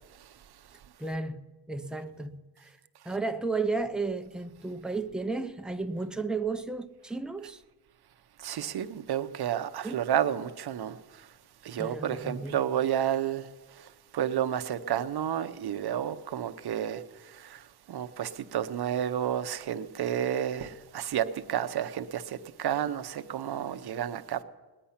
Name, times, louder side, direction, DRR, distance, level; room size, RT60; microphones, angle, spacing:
voice 1, 1.0-2.8 3.0-7.6 9.8-10.1 11.8-12.6, right 3 dB, ahead, 0.5 m, -33 dB
voice 2, 8.4-11.0 11.6-13.5 14.1-17.0 17.3-17.6 17.9-24.4, right 10 dB, 65° right, 0.8 m, -31 dB
19.5 x 10.0 x 5.8 m
wide cardioid pair, 160°, 42 cm